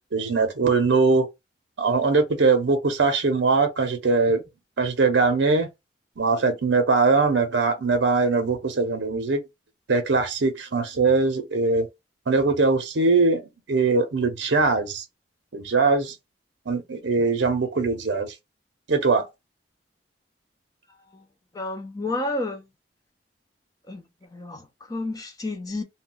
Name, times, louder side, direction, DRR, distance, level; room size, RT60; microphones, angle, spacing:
voice 1, 0.1-1.2 1.8-4.4 4.8-5.7 6.2-9.4 9.9-11.9 12.3-13.4 13.7-15.0 15.5-16.1 16.7-18.3 18.9-19.2, right 4 dB, 75° right, 0.6 m, -21 dB
voice 2, 21.5-22.6 23.9-24.0 24.3-25.8, left 2 dB, 20° left, 0.4 m, -30 dB
2.2 x 2.1 x 3.7 m
head